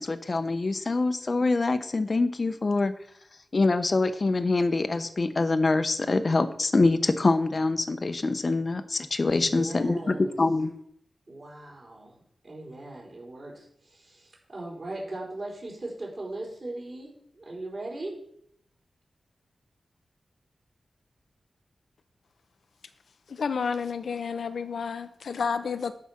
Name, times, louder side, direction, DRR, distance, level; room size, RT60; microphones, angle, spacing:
voice 1, 0.0-2.9 3.5-10.7, left 3 dB, 40° left, 10 dB, 0.8 m, -25 dB
voice 2, 9.3-10.3 11.3-12.1 12.4-18.2, right 2 dB, 45° right, -4 dB, 4.7 m, -39 dB
voice 3, 23.3-25.9, left 5 dB, 80° left, 11 dB, 0.7 m, -30 dB
12.0 x 5.0 x 5.8 m, 0.67 s
wide cardioid pair, 110°, 0 cm